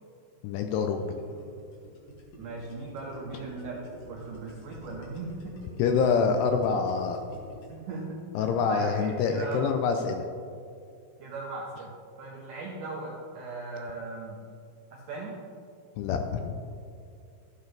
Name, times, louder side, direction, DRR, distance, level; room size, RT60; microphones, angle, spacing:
voice 1, 0.4-1.1 5.8-7.2 8.4-10.2 16.0-16.5, left 5 dB, 80° left, 5 dB, 2.5 m, -26 dB
Gurgling, 0.9-7.8, equal, 60° left, 3.0 m, -48 dB
voice 2, 2.4-5.6 7.7-9.7 11.2-11.9 12.2-14.4 14.9-15.3, right 3 dB, 80° right, -2 dB, 1.9 m, -38 dB
13.0 x 8.2 x 3.3 m, 2.4 s
omnidirectional pair, 5.1 m